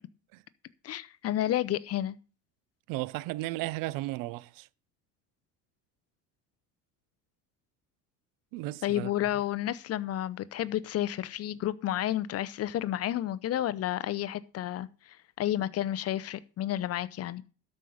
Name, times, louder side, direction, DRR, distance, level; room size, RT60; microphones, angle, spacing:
voice 1, 0.8-2.2 8.8-17.4, left 12 dB, 45° left, 0.8 m, -31 dB
voice 2, 2.9-4.7 8.5-9.1, right 18 dB, 70° right, 0.6 m, -34 dB
12.5 x 5.6 x 6.5 m
supercardioid pair, 105°, 34 cm